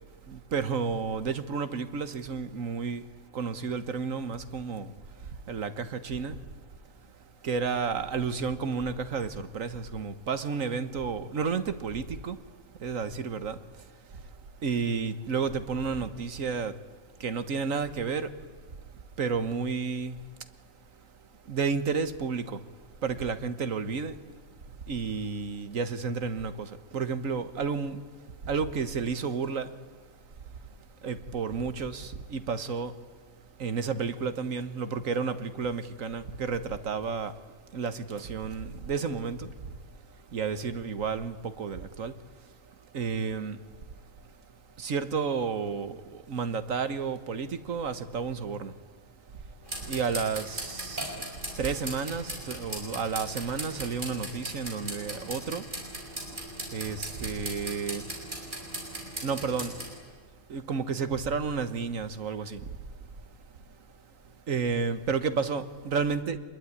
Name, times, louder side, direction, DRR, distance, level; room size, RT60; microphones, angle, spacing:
voice 1, 0.3-5.0 5.5-6.4 7.4-12.4 12.8-13.8 14.6-16.8 17.2-18.4 19.2-20.2 21.5-22.7 23.0-24.2 24.9-28.0 28.4-29.7 31.0-33.0 33.6-37.4 37.7-39.5 40.3-42.2 42.9-43.6 44.8-48.8 49.8-51.3 51.6-55.7 56.7-58.2 59.2-59.8 60.5-62.7 64.5-66.4, right 5 dB, 70° right, 1.7 m, -31 dB
sound 1, 49.6-59.9, right 1 dB, 35° right, 6.2 m, -38 dB
25.0 x 22.0 x 9.7 m
omnidirectional pair, 1.5 m